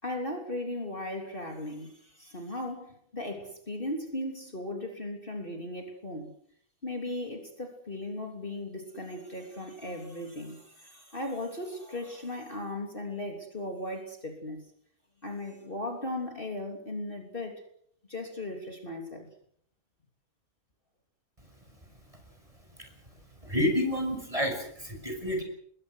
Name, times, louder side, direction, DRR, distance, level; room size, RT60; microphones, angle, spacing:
voice 1, 0.0-6.3 6.8-14.7 15.2-17.6 18.1-19.3, left 1 dB, 35° left, 3.5 m, -37 dB
voice 2, 23.4-25.4, left 1 dB, 20° right, 6.5 m, -29 dB
27.5 x 22.0 x 6.4 m
omnidirectional pair, 1.6 m